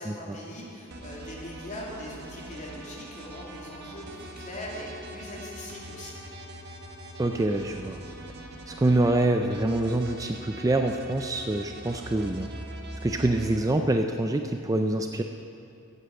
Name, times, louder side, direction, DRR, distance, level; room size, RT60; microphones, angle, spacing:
voice 1, 0.0-6.2, left 1 dB, 35° left, -4 dB, 2.9 m, -41 dB
sound 1, 0.9-13.6, right 1 dB, 50° right, 1.4 m, -42 dB
voice 2, 7.2-8.0 8.7-12.5 13.0-15.2, right 2 dB, 15° right, 5 dB, 0.4 m, -25 dB
15.5 x 8.3 x 7.1 m, 2.6 s
head